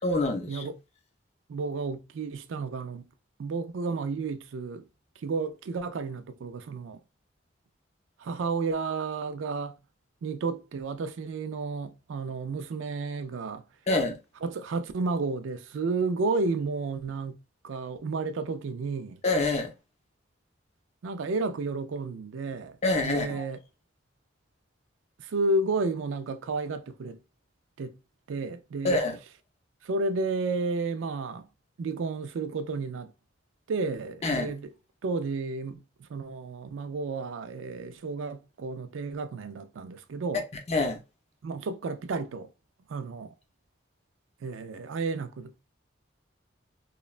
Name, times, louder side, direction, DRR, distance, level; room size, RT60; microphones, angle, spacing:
voice 1, 0.0-0.7 13.9-14.2 19.2-19.7 22.8-23.4 28.8-29.2 34.2-34.5 40.7-41.0, left 2 dB, 35° left, 0.5 m, -26 dB
voice 2, 1.5-3.1 3.4-4.9 5.2-7.0 8.2-9.8 10.2-13.6 14.4-17.4 17.6-19.2 21.0-23.6 25.2-27.2 27.8-28.0 28.3-29.0 29.8-31.5 31.8-33.1 33.7-34.7 35.0-40.5 41.4-42.5 42.9-43.3 44.4-45.5, right 3 dB, 90° right, 0.4 m, -32 dB
3.0 x 2.2 x 2.4 m
head